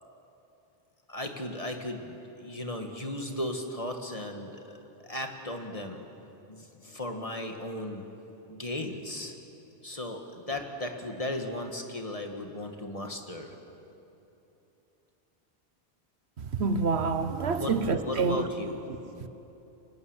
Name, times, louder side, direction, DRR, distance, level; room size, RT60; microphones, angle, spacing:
voice 1, 1.1-6.1 6.5-8.0 8.5-9.4 9.8-13.5 17.6-17.7 18.0-19.1, left 1 dB, 35° left, 1.9 m, -36 dB
voice 2, 16.5-18.4 19.2-19.3, right 4 dB, 80° right, 1.3 m, -27 dB
25.0 x 15.5 x 9.6 m
omnidirectional pair, 1.1 m